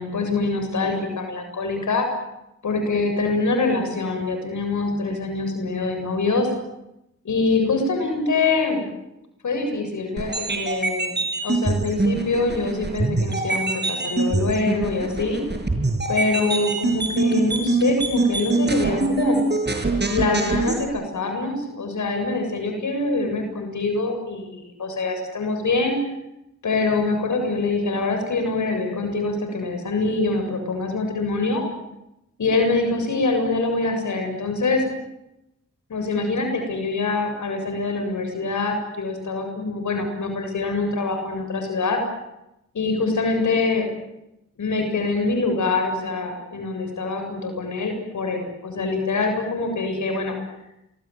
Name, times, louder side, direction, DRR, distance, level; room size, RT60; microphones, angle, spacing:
voice 1, 0.0-2.1 2.6-6.5 7.2-8.8 9.4-11.2 11.4-15.4 16.1-19.4 20.1-26.0 26.6-31.6 32.4-34.8 35.9-42.0 42.7-43.9 44.6-50.4, left 3 dB, 80° left, 5 dB, 7.9 m, -24 dB
sound 1, 10.2-20.8, right 3 dB, 35° right, 6.2 m, -24 dB
27.5 x 22.5 x 9.4 m, 0.87 s
cardioid pair, 60°, 29 cm